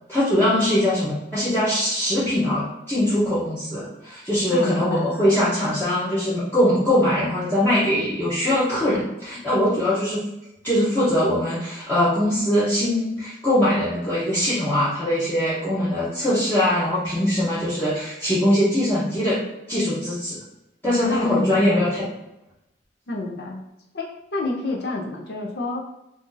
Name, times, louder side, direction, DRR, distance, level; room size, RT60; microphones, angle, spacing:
voice 1, 0.1-10.2 10.6-19.4 19.7-20.4 20.8-22.0, left 1 dB, 10° left, -11 dB, 0.8 m, -22 dB
voice 2, 4.5-5.4 20.8-21.9 23.1-23.6 23.9-26.0, left 2 dB, 60° left, 0 dB, 0.5 m, -30 dB
2.6 x 2.5 x 3.8 m, 0.89 s
head